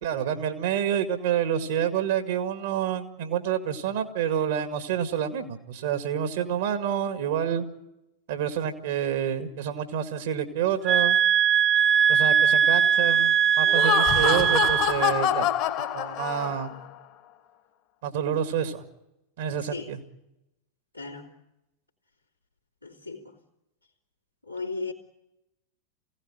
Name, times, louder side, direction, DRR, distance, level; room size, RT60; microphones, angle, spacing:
voice 1, 0.0-7.7 8.3-11.2 12.1-15.5 15.9-16.7 18.0-18.8 19.4-20.0, right 9 dB, 55° right, 2.0 m, -28 dB
sound 1, 10.8-15.2, right 8 dB, 30° right, 0.9 m, -21 dB
Laughter, 13.6-16.9, left 11 dB, 40° left, 1.6 m, -26 dB
voice 2, 20.9-21.3 22.8-23.4 24.4-24.9, left 3 dB, 90° left, 3.1 m, -35 dB
22.5 x 17.0 x 8.9 m
figure-of-eight pair, 90°, 0 cm